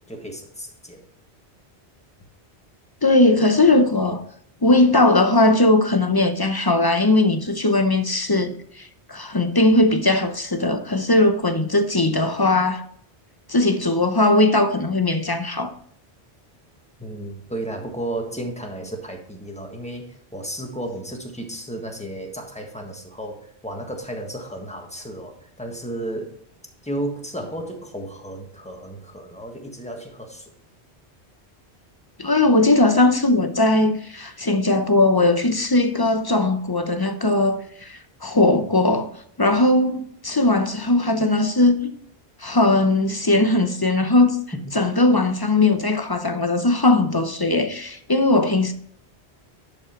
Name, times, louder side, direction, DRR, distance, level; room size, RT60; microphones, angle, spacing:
voice 1, 0.1-1.0 17.0-26.4 26.8-30.5 44.5-44.7, right 1 dB, 5° left, 1.5 m, -33 dB
voice 2, 3.0-4.2 4.6-12.8 13.5-15.7 32.2-39.1 39.4-41.9 42.4-44.4 44.7-48.7, left 2 dB, 25° left, 0.7 m, -19 dB
11.0 x 5.1 x 4.5 m
omnidirectional pair, 1.1 m